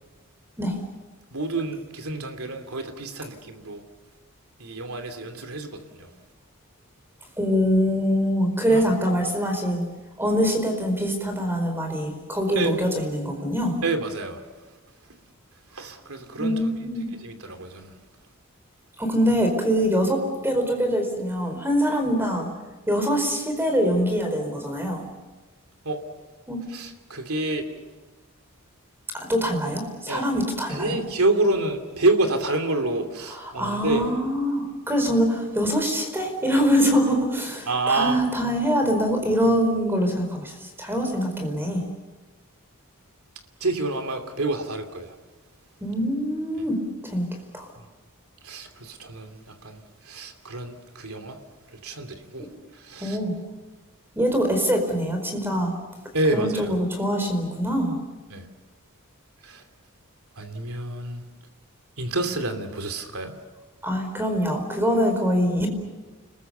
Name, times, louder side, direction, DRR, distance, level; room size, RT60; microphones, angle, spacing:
voice 1, 1.3-3.8 4.6-6.1 8.7-8.8 12.6-12.8 13.8-14.4 15.7-16.6 17.1-17.9 25.8-26.0 26.7-27.7 30.1-30.3 30.7-34.1 37.7-38.2 43.6-45.1 47.8-47.9 48.4-49.8 50.0-51.4 51.7-52.5 52.7-53.2 56.1-56.8 58.3-58.5 59.4-59.6 60.4-61.2 62.0-63.3, right 2 dB, 80° right, 6 dB, 2.8 m, -28 dB
voice 2, 7.4-9.8 10.2-13.8 16.3-17.1 19.0-22.5 22.9-25.0 26.5-26.6 29.1-31.0 33.3-41.8 45.8-47.3 47.5-47.7 53.0-53.4 54.2-55.7 56.3-58.0 63.8-65.7, equal, 10° right, 5 dB, 4.7 m, -24 dB
30.0 x 21.5 x 6.9 m, 1.3 s
head